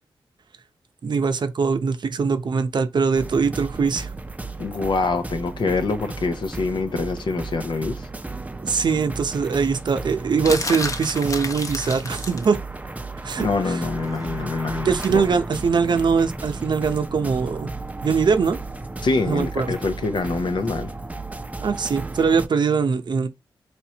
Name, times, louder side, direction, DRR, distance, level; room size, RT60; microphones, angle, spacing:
voice 1, 1.0-4.1 8.6-12.6 13.2-13.5 14.8-17.7 18.0-18.6 19.2-19.7 21.6-23.3, right 5 dB, 60° right, 0.7 m, -22 dB
sound 1, 3.2-22.5, right 3 dB, 15° right, 0.5 m, -34 dB
voice 2, 4.6-8.1 13.4-15.2 19.0-20.9, left 3 dB, 65° left, 0.6 m, -25 dB
sound 2, 10.4-12.5 15.0-15.2, left 3 dB, 40° left, 1.0 m, -30 dB
4.3 x 3.1 x 2.8 m
cardioid pair, 70°, 9 cm